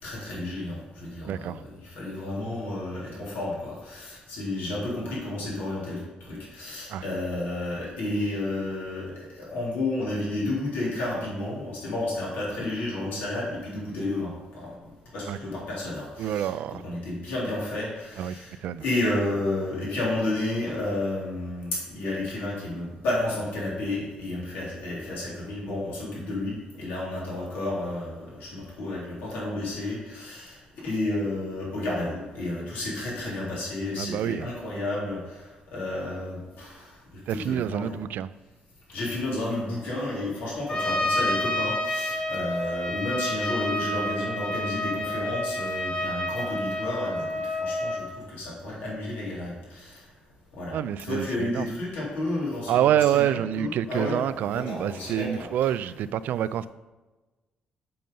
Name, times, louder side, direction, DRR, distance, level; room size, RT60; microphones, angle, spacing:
voice 1, 0.0-6.0 6.3-37.0 37.3-38.0 38.9-50.0 50.5-55.5, left 2 dB, 80° left, 3.2 m, -31 dB
voice 2, 1.3-1.6 6.9-7.0 15.3-15.4 16.2-16.8 18.2-18.4 18.6-18.8 34.0-34.5 37.3-38.3 50.7-51.7 52.7-56.7, right 10 dB, 75° right, 0.4 m, -27 dB
Trumpet, 40.7-48.0, left 1 dB, 35° left, 1.3 m, -29 dB
7.7 x 6.7 x 5.4 m
cardioid pair, 85°, 3 cm